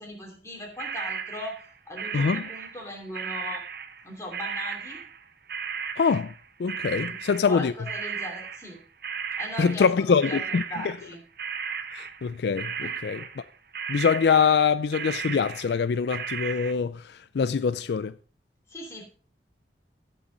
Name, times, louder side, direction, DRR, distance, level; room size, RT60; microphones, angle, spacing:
voice 1, 0.0-1.6 1.9-3.7 4.0-5.0 7.1-7.2 7.4-8.8 9.4-11.2 12.8-12.9 18.7-19.0, left 1 dB, 15° left, 2.8 m, -38 dB
sound 1, 0.8-2.9 3.1-10.0 10.2-13.5 13.7-14.7 14.9-16.7, right 6 dB, 55° right, 0.8 m, -35 dB
voice 2, 2.1-2.5 6.0-6.3 6.6-7.7 9.6-10.6 11.9-13.2 13.9-18.1, left 6 dB, 65° left, 0.4 m, -24 dB
17.0 x 5.6 x 3.9 m
head